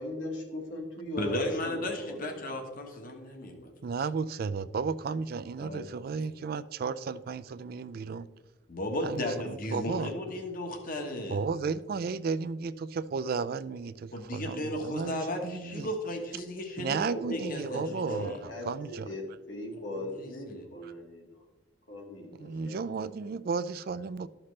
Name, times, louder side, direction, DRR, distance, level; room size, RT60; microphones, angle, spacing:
voice 1, 0.0-2.4 17.0-21.4 21.9-22.8, left 1 dB, 80° left, 0 dB, 2.1 m, -39 dB
voice 2, 1.2-3.7 5.6-5.9 8.7-11.4 14.1-18.4 20.1-20.7, left 1 dB, 50° left, 4 dB, 1.2 m, -35 dB
voice 3, 3.8-8.3 9.0-10.1 11.3-15.9 16.8-19.1 20.8-20.9 22.4-24.3, right 5 dB, 50° right, 14 dB, 0.3 m, -34 dB
13.0 x 5.8 x 3.2 m, 1.1 s
head